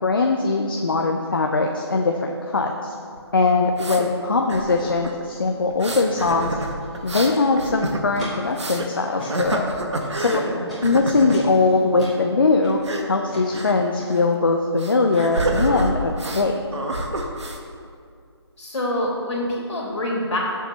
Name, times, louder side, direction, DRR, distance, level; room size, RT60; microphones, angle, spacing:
voice 1, 0.0-2.9 3.3-6.6 7.0-9.6 10.2-10.4 10.8-12.8 13.1-16.6, left 3 dB, 50° left, 2 dB, 0.7 m, -21 dB
sound 1, 3.1-4.1 4.5-5.2 5.7-8.9 9.3-10.5 10.8-11.4 12.7-13.1 13.5-13.8 14.1-14.2 14.8-16.5 16.7-17.6, right 1 dB, 80° right, 1.4 m, -28 dB
Walk footsteps, 6.2-6.3 6.6-7.5 8.1-8.6 9.0-9.3 10.0-10.3 10.7-10.8 11.3-12.1 12.6-12.9 13.3-13.4 14.0-14.1, left 1 dB, ahead, 0.4 m, -38 dB
voice 2, 18.6-20.4, left 1 dB, 80° left, -4 dB, 2.6 m, -26 dB
16.0 x 7.1 x 3.0 m, 2.3 s
hypercardioid pair, 170°, 14 cm